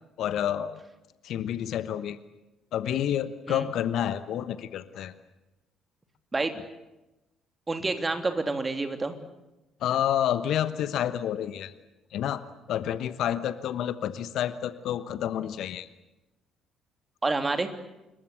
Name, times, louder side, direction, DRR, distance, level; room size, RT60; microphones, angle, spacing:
voice 1, 0.2-0.8 1.2-2.2 2.7-5.1 9.8-11.7 12.1-12.4 12.7-15.9, left 10 dB, 60° left, 13 dB, 1.2 m, -29 dB
voice 2, 6.3-6.6 7.7-9.2 17.2-17.7, right 3 dB, 25° right, 6 dB, 3.2 m, -28 dB
27.0 x 22.0 x 8.4 m, 1.0 s
figure-of-eight pair, 45°, 0 cm